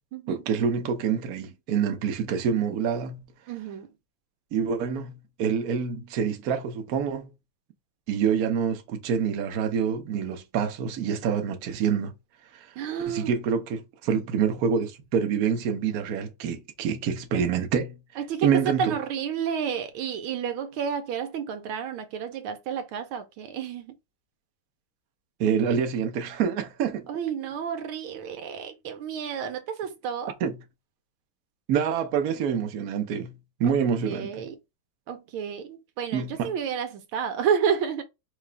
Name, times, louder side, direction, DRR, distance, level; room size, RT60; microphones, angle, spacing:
voice 1, 0.3-3.2 4.5-7.3 8.1-12.1 12.5-12.7 13.1-17.9 18.4-19.0 25.4-27.0 30.4-30.6 31.7-33.3 33.6-34.5 36.1-36.5, right 7 dB, 60° right, 1.0 m, -26 dB
voice 2, 3.5-3.9 12.8-13.4 14.1-14.2 18.2-23.9 27.1-30.3 33.6-33.7 34.0-34.6 35.1-38.0, right 7 dB, 80° right, 1.6 m, -30 dB
4.8 x 2.4 x 3.2 m
omnidirectional pair, 2.3 m